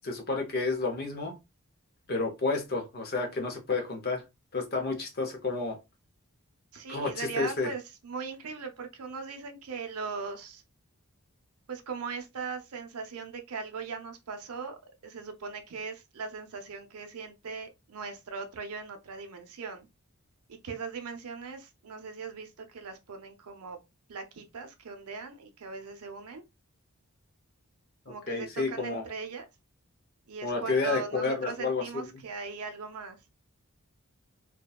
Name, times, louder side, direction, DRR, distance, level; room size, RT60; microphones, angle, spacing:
voice 1, 0.0-1.4 2.1-4.2 4.5-5.8 6.9-7.7 28.1-29.0 30.4-32.0, left 3 dB, 45° left, 0.6 m, -30 dB
voice 2, 6.7-10.6 11.7-19.9 20.5-23.8 24.1-26.4 28.1-29.4 30.3-33.2, right 5 dB, 80° right, 0.6 m, -39 dB
2.7 x 2.1 x 2.2 m
head